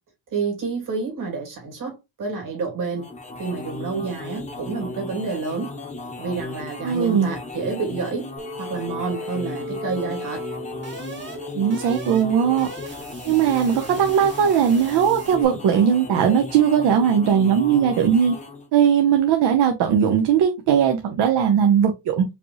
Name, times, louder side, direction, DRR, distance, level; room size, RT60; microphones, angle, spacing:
voice 1, 0.3-3.1 3.4-5.7 6.2-8.3 8.6-10.4, right 4 dB, 45° right, 2.5 m, -29 dB
sound 1, 2.8-18.7, left 2 dB, 15° left, 0.8 m, -36 dB
voice 2, 6.8-7.3 11.5-12.7 13.2-18.3 18.7-22.2, right 8 dB, 65° right, 0.9 m, -19 dB
sound 2, 8.4-15.4, left 1 dB, 25° right, 1.1 m, -37 dB
5.1 x 2.9 x 3.0 m
cardioid pair, 165°, 43 cm